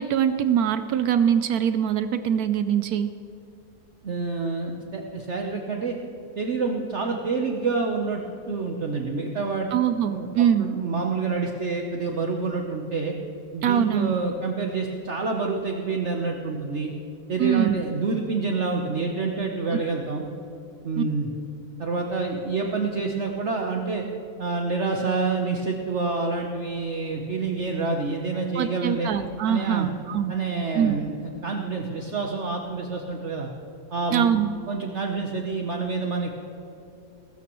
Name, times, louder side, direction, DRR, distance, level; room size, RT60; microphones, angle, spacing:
voice 1, 0.0-3.1 9.7-10.7 13.6-14.1 17.4-17.8 21.0-21.1 28.6-30.3 30.7-30.9 34.1-34.5, right 9 dB, 75° right, 10 dB, 1.1 m, -23 dB
voice 2, 4.0-6.0 6.4-9.7 10.1-13.1 13.5-16.9 17.3-20.2 20.8-21.3 21.8-24.0 24.4-29.1 29.5-29.9 30.3-33.5 33.9-34.3 34.7-36.3, right 4 dB, 50° right, 2 dB, 1.2 m, -28 dB
21.5 x 13.0 x 3.1 m, 2.9 s
omnidirectional pair, 1.7 m